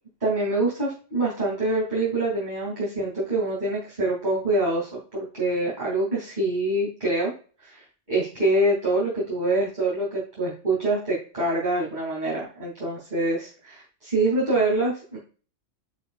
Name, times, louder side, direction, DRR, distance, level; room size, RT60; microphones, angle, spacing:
voice 1, 0.2-7.3 7.6-15.2, right 2 dB, 35° right, -6 dB, 2.8 m, -25 dB
9.7 x 5.4 x 2.3 m, 0.39 s
omnidirectional pair, 1.3 m